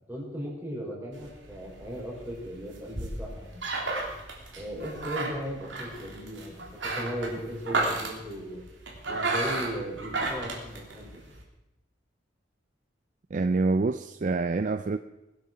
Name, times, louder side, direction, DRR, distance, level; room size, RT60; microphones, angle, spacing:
voice 1, 0.1-3.6 4.5-8.6 9.0-11.1, equal, 10° right, -4 dB, 4.9 m, -37 dB
sound 1, 1.1-11.4, right 2 dB, 75° right, 3.2 m, -34 dB
voice 2, 13.3-15.0, right 3 dB, 40° right, 10 dB, 0.4 m, -26 dB
21.0 x 8.5 x 6.2 m, 0.96 s
head